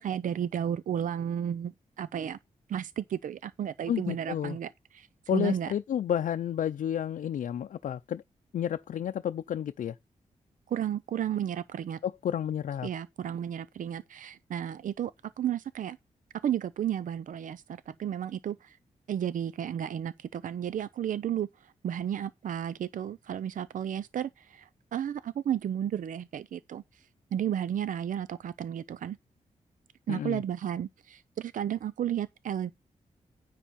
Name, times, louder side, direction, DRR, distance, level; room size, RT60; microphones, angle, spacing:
voice 1, 0.0-2.4 2.7-5.7 10.7-12.0 12.8-15.1 15.4-16.0 16.4-18.8 19.1-29.2 30.1-32.7, right 9 dB, 80° right, 0.5 m, -33 dB
voice 2, 3.9-4.6 5.3-8.2 8.5-9.9 12.0-12.9 30.1-30.4, left 9 dB, 90° left, 0.5 m, -31 dB
10.0 x 8.5 x 4.2 m
wide cardioid pair, 105°, 13 cm